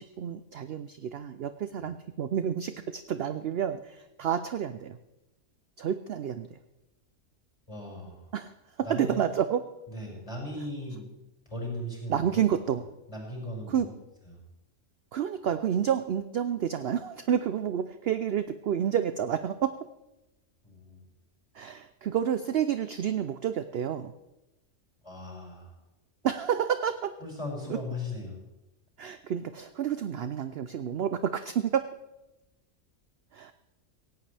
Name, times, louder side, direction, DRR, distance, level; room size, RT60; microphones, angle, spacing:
voice 1, 0.0-5.0 5.8-6.6 8.3-9.6 12.1-12.8 13.7-13.9 15.1-19.8 21.5-24.1 26.2-27.1 27.7-27.8 29.0-31.8 33.3-33.5, right 9 dB, 60° right, 11 dB, 0.7 m, -29 dB
voice 2, 7.7-8.2 8.8-9.2 9.9-11.1 11.5-12.4 13.1-13.9 20.6-21.0 25.0-25.7 27.2-28.3, left 1 dB, 20° left, -2 dB, 6.1 m, -37 dB
17.5 x 16.5 x 3.4 m, 0.97 s
omnidirectional pair, 1.5 m